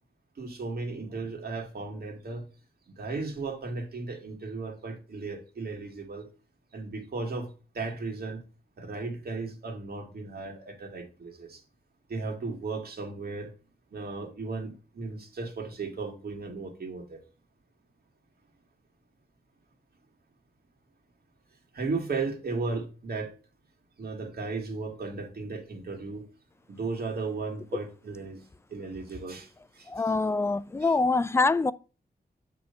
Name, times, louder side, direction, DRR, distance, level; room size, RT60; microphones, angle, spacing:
voice 1, 0.4-2.5 2.9-6.3 6.7-7.5 7.7-8.4 8.8-11.6 12.1-13.5 13.9-17.2 21.7-23.3 24.0-26.3 26.7-28.4 28.7-30.2 30.8-31.0, right 3 dB, 65° right, 1.8 m, -35 dB
voice 2, 29.9-31.7, left 3 dB, 15° left, 0.3 m, -24 dB
8.3 x 3.1 x 5.3 m
wide cardioid pair, 135°, 17 cm